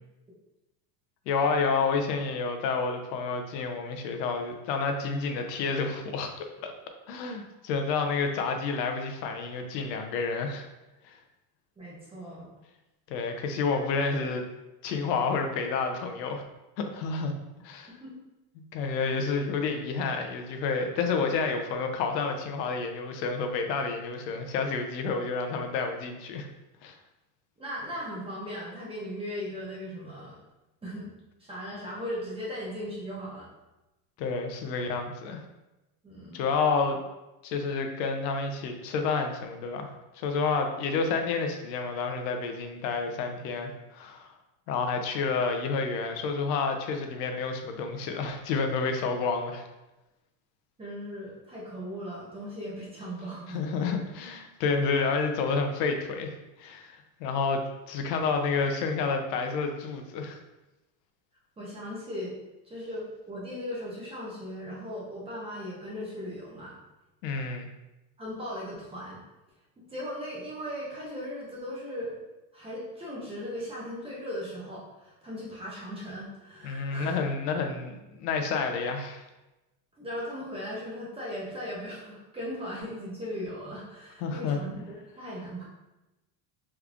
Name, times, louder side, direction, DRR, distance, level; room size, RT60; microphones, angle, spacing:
voice 1, 1.3-6.7 7.1-10.7 11.0-11.2 13.1-14.5 14.8-16.4 16.8-17.3 17.6-17.9 18.7-26.5 26.8-26.9 34.2-35.4 36.3-37.0 37.4-44.3 44.7-49.7 53.5-60.4 67.2-67.7 76.6-79.2 84.2-84.6, left 4 dB, 80° left, 5 dB, 0.7 m, -29 dB
voice 2, 11.8-12.5 18.0-18.1 27.6-30.4 30.8-31.1 31.4-33.5 36.0-36.4 50.8-53.9 61.6-62.4 62.6-66.7 68.2-69.2 69.8-72.2 72.5-77.2 80.0-84.7 85.1-85.7, equal, 10° right, -6 dB, 0.7 m, -38 dB
3.5 x 3.2 x 2.4 m, 1.0 s
supercardioid pair, 140°, 50 cm